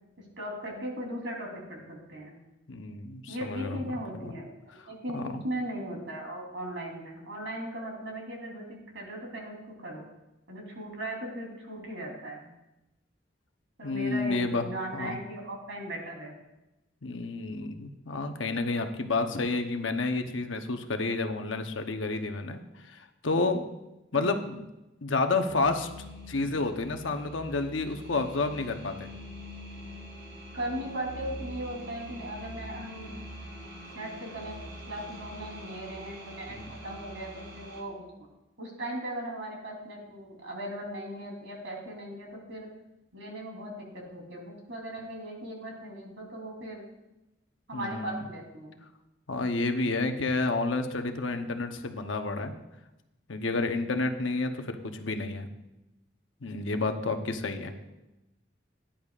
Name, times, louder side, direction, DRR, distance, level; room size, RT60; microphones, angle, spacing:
voice 1, 0.2-2.4 3.3-4.6 4.9-10.0 10.5-12.5 13.8-16.3 24.1-24.3 30.5-33.1 33.9-34.6 34.9-38.0 38.6-42.7 43.1-46.8 47.7-48.8, right 1 dB, 80° right, -1 dB, 3.4 m, -38 dB
voice 2, 2.7-3.8 4.1-4.3 5.1-5.4 13.8-14.6 14.9-15.2 17.0-23.6 24.1-24.6 25.0-25.9 26.3-29.1 36.5-36.7 47.7-48.2 49.3-52.5 53.3-55.5 56.4-57.7, left 3 dB, 85° left, 6 dB, 0.9 m, -30 dB
sound 1, 25.5-37.8, equal, 60° right, 2.7 m, -44 dB
17.5 x 10.0 x 2.5 m, 0.96 s
head